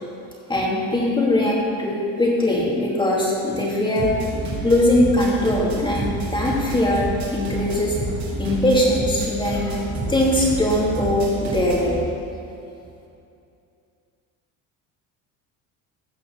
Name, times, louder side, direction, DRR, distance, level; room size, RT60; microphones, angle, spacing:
voice 1, 0.5-4.1 4.6-8.0 8.4-11.9, left 1 dB, 15° left, -4 dB, 2.8 m, -21 dB
sound 1, 4.0-12.0, right 2 dB, 50° right, 3.5 m, -29 dB
16.0 x 5.7 x 6.9 m, 2.6 s
cardioid pair, 120°, 35 cm